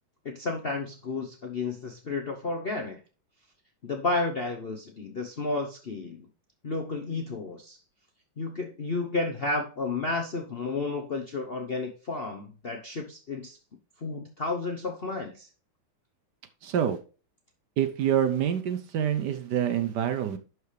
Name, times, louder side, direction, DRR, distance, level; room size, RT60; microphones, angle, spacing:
voice 1, 0.2-3.0 3.8-6.3 6.6-7.8 8.4-13.6 14.0-15.5, left 3 dB, 50° left, 2 dB, 0.7 m, -32 dB
voice 2, 16.6-17.0 17.8-20.4, right 9 dB, 65° right, 9 dB, 1.2 m, -26 dB
11.5 x 4.8 x 3.3 m, 0.36 s
omnidirectional pair, 2.2 m